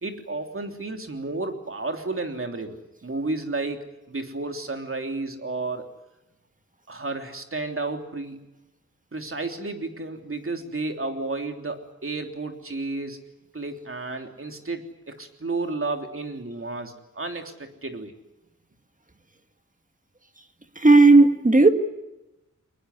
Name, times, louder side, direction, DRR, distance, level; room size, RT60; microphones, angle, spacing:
voice 1, 0.0-5.8 6.9-8.4 9.1-13.2 13.5-18.1, right 3 dB, 45° right, 3.2 m, -32 dB
voice 2, 20.8-21.7, right 3 dB, 25° right, 1.8 m, -14 dB
23.5 x 21.0 x 9.8 m
wide cardioid pair, 100°, 29 cm